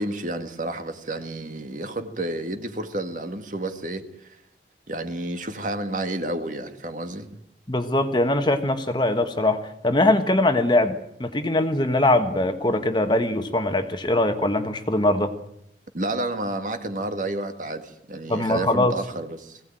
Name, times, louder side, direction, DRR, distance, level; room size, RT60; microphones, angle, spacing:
voice 1, 0.0-4.4 4.9-7.3 15.9-19.6, right 1 dB, 45° right, 1.9 m, -30 dB
voice 2, 7.7-15.3 18.3-18.9, left 1 dB, 25° left, 1.4 m, -22 dB
21.0 x 17.0 x 9.0 m
head